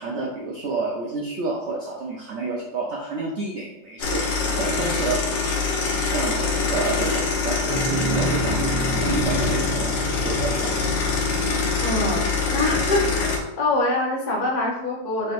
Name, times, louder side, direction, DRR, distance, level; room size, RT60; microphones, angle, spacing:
voice 1, 0.0-5.4 6.1-8.7 9.0-10.7, right 3 dB, 85° right, -3 dB, 0.6 m, -29 dB
sound 1, 4.0-13.4, left 4 dB, 80° left, 1.4 m, -24 dB
sound 2, 7.7-12.9, right 2 dB, 35° right, 0.4 m, -30 dB
voice 2, 11.8-12.3 12.5-13.3 13.6-15.3, left 2 dB, 50° left, -3 dB, 0.5 m, -24 dB
4.0 x 3.9 x 2.5 m, 0.88 s
omnidirectional pair, 2.0 m